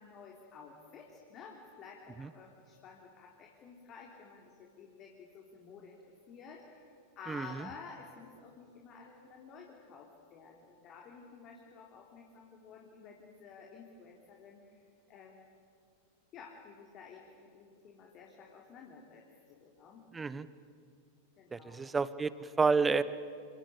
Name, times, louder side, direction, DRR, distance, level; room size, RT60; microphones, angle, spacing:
voice 1, 0.0-6.0 6.3-15.6 16.3-20.0 21.4-21.8, left 5 dB, 35° left, 0 dB, 3.7 m, -52 dB
voice 2, 7.3-7.7 20.1-20.5 21.5-23.0, right 4 dB, 15° right, 16 dB, 1.1 m, -30 dB
28.0 x 25.5 x 8.2 m, 2.4 s
figure-of-eight pair, 90°, 0 cm